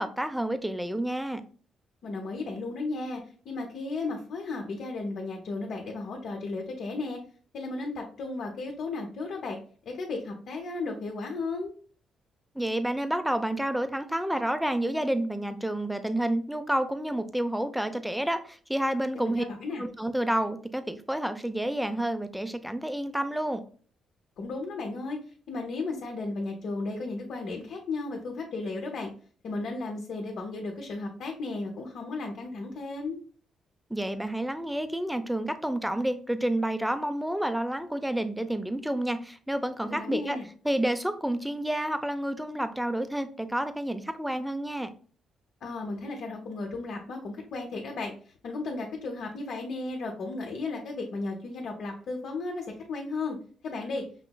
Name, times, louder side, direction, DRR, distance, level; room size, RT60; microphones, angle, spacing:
voice 1, 0.0-1.4 12.6-19.4 19.8-23.6 33.9-40.4 40.6-44.9, right 1 dB, 5° right, 10 dB, 0.5 m, -29 dB
voice 2, 2.0-7.2 7.5-9.6 9.9-11.7 19.1-19.8 24.4-25.2 25.5-29.1 29.4-33.2 39.8-40.5 45.6-53.4 53.6-54.1, left 3 dB, 60° left, 1 dB, 0.8 m, -34 dB
5.6 x 3.0 x 2.2 m, 0.43 s
cardioid pair, 90°, 0 cm